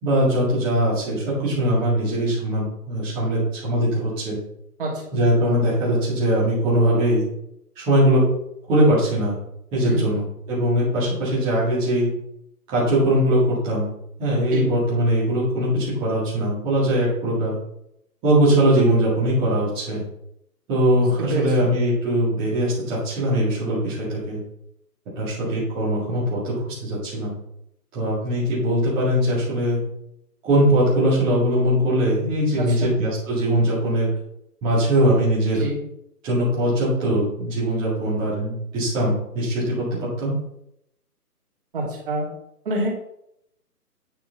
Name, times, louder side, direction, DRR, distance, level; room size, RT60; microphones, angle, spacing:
voice 1, 0.0-4.4 5.1-7.3 7.8-8.2 8.7-9.4 9.7-12.1 12.7-13.9 14.2-17.6 18.2-20.0 20.7-24.4 25.2-27.4 27.9-29.8 30.4-34.1 34.6-35.6 36.2-40.3, right 1 dB, 10° right, -11 dB, 2.0 m, -21 dB
voice 2, 20.9-21.5 25.4-25.5 32.6-32.9 35.5-35.8 41.7-42.3 42.6-42.9, right 2 dB, 35° right, -3 dB, 2.8 m, -27 dB
9.1 x 6.0 x 4.0 m, 0.78 s
hypercardioid pair, 165°, 47 cm